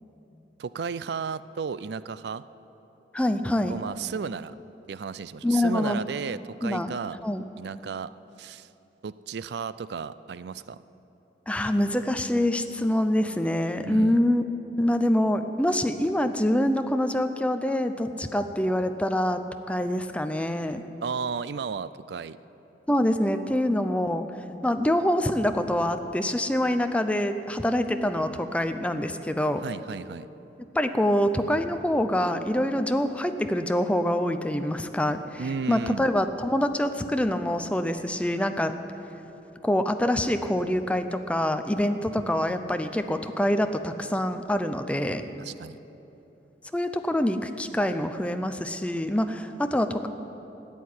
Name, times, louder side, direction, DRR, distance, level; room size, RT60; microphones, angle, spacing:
voice 1, 0.6-2.4 3.7-4.5 4.9-7.2 7.6-8.1 8.4-8.7 9.0-10.8 13.8-14.2 21.0-22.4 29.6-30.3 35.4-36.1 45.4-45.8, right 5 dB, 65° right, 16 dB, 0.4 m, -34 dB
voice 2, 3.1-3.8 5.4-6.0 6.6-6.9 7.2-7.4 11.5-14.4 14.8-19.4 19.7-20.8 22.9-24.2 24.6-29.6 30.7-38.7 39.6-45.3 46.7-50.1, left 1 dB, 5° left, 8 dB, 0.6 m, -25 dB
14.0 x 8.5 x 9.3 m, 3.0 s
head